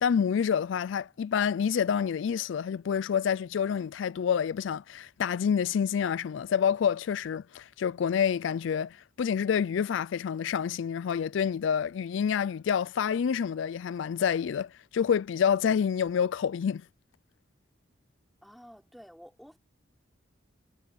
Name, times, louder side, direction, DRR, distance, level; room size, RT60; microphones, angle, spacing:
voice 1, 0.0-16.8, left 7 dB, 75° left, 0.3 m, -28 dB
voice 2, 18.4-19.6, equal, ahead, 3.6 m, -51 dB
head